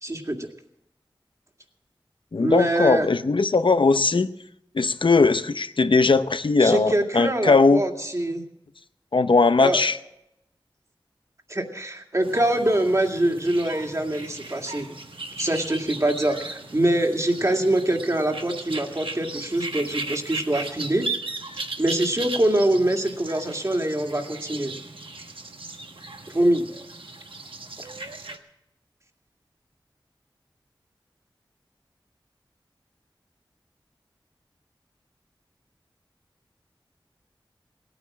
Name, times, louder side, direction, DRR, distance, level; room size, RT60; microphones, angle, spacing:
voice 1, 0.0-0.5 2.4-3.1 6.6-8.4 9.6-9.8 11.5-14.8 15.4-21.1 21.8-24.7 26.3-26.6 27.8-27.9, right 1 dB, 35° right, 3 dB, 2.2 m, -24 dB
voice 2, 2.3-4.3 4.7-7.8 9.1-9.9, left 3 dB, 70° left, 11 dB, 0.7 m, -19 dB
sound 1, 12.2-28.4, right 3 dB, 85° right, 1.3 m, -37 dB
17.5 x 9.1 x 7.4 m, 0.83 s
wide cardioid pair, 45°, 9 cm